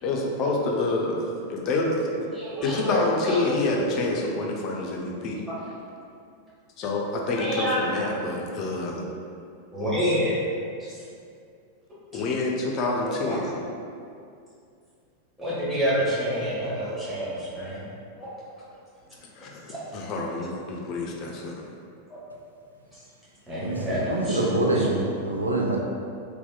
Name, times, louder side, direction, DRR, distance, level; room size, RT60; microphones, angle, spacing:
voice 1, 0.0-2.3 2.6-5.4 6.8-9.1 12.1-13.4 19.3-21.6, left 2 dB, 40° left, -1 dB, 0.3 m, -27 dB
voice 2, 2.3-3.0 3.2-3.5 3.8-3.9 5.5-5.6 7.3-8.1 9.7-10.3 10.8-11.0 12.1-12.2 13.0-13.5 15.4-17.8 18.2-18.4 19.7-19.8 22.1-22.2 23.5-24.4 24.8-24.9, equal, 10° right, -12 dB, 1.1 m, -28 dB
voice 3, 23.6-25.8, right 2 dB, 80° right, -2 dB, 0.3 m, -25 dB
2.7 x 2.1 x 2.2 m, 2.4 s
figure-of-eight pair, 90°, 0 cm